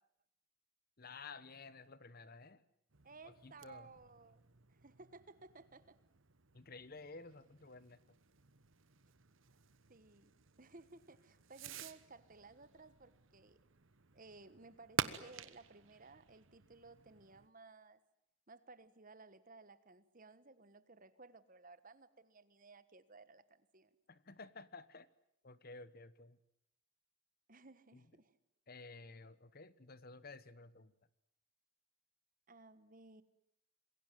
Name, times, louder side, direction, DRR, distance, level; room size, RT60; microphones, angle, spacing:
voice 1, 1.0-2.6 3.2-3.9 6.5-8.0 24.1-25.1 25.4-26.4 27.9-28.1 28.7-30.9, left 3 dB, 45° left, 16 dB, 1.1 m, -53 dB
Fireworks, 2.9-17.5, right 6 dB, 60° right, 1.2 m, -49 dB
voice 2, 3.0-4.4 4.7-6.0 9.9-13.6 14.1-18.0 18.5-23.9 27.5-28.3 32.5-33.2, right 3 dB, 40° right, 14 dB, 1.4 m, -58 dB
27.0 x 22.0 x 9.3 m, 0.75 s
head